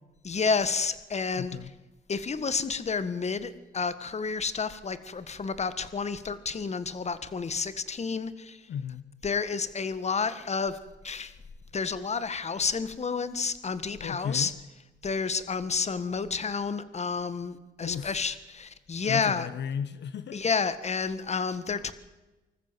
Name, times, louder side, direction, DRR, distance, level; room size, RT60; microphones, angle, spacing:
voice 1, 0.2-1.6 2.1-8.7 9.2-10.8 11.0-11.4 11.7-14.5 15.0-19.5 20.3-21.9, left 5 dB, 35° left, 14 dB, 1.6 m, -30 dB
voice 2, 1.3-1.7 8.7-9.1 14.0-14.5 17.8-18.1 19.1-20.5, left 7 dB, 60° left, 12 dB, 1.1 m, -34 dB
25.0 x 14.0 x 7.6 m, 1.1 s
cardioid pair, 90°, 20 cm